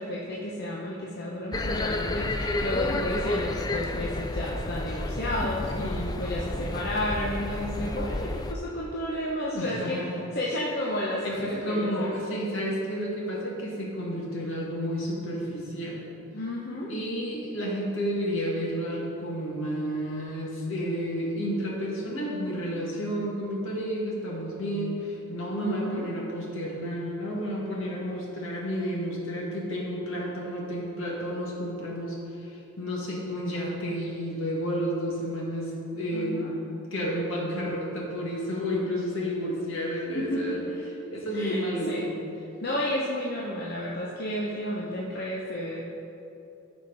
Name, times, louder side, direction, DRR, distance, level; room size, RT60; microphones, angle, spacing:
voice 1, 0.0-5.8 6.2-10.1 10.3-12.1 16.3-16.9 25.6-26.1 36.1-36.6 40.1-40.8 41.0-41.6 41.9-42.0 42.6-45.8, left 1 dB, 45° left, -4 dB, 0.8 m, -32 dB
sound 1, 1.5-8.5, left 2 dB, 20° left, 0.3 m, -31 dB
voice 2, 5.8-6.1 9.5-10.1 11.2-16.0 16.9-40.6 41.1-42.2, equal, 65° left, -3 dB, 2.0 m, -31 dB
14.5 x 5.1 x 4.0 m, 2.8 s
head